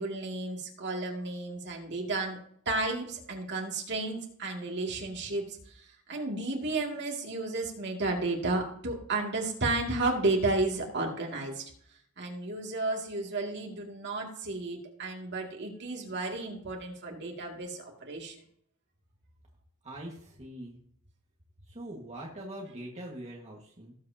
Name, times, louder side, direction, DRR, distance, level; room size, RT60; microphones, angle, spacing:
voice 1, 0.0-11.6 12.2-18.4, right 2 dB, 50° right, 0 dB, 2.3 m, -32 dB
voice 2, 19.8-20.8 21.7-23.9, right 1 dB, 30° right, -2 dB, 1.6 m, -43 dB
18.5 x 7.9 x 2.8 m, 0.65 s
head